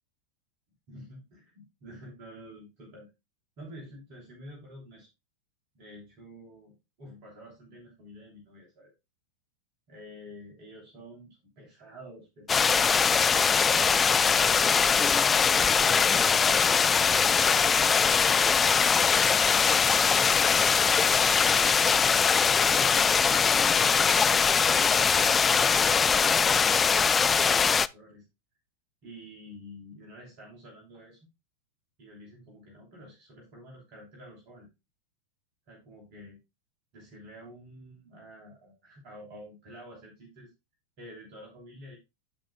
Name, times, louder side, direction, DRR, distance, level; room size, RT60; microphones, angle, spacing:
voice 1, 0.9-3.1 3.6-5.1 5.7-8.9 9.9-13.0 13.7-15.6 16.4-23.3 23.6-24.5 25.4-26.2 27.4-28.2 29.0-31.2 32.0-34.7 35.7-36.4 36.9-40.5 41.0-42.0, equal, 40° right, -1 dB, 3.1 m, -49 dB
sound 1, 12.5-27.9, left 6 dB, 20° left, 0.3 m, -22 dB
15.0 x 5.2 x 2.2 m, 0.23 s
figure-of-eight pair, 90°, 0 cm